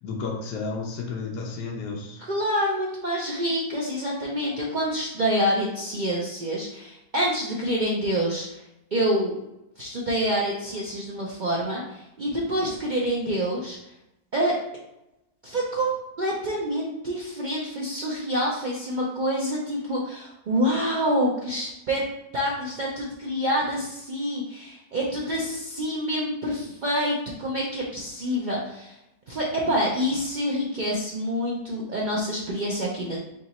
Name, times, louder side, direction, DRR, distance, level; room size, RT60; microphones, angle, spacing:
voice 1, 0.0-2.2, left 4 dB, 85° left, 0 dB, 1.3 m, -32 dB
voice 2, 2.2-8.6 8.9-9.4 9.8-13.8 14.3-14.5 15.4-15.9 16.2-22.0 22.3-28.9 29.3-33.2, equal, 80° right, -4 dB, 0.4 m, -27 dB
3.6 x 2.8 x 4.1 m, 0.89 s
omnidirectional pair, 1.7 m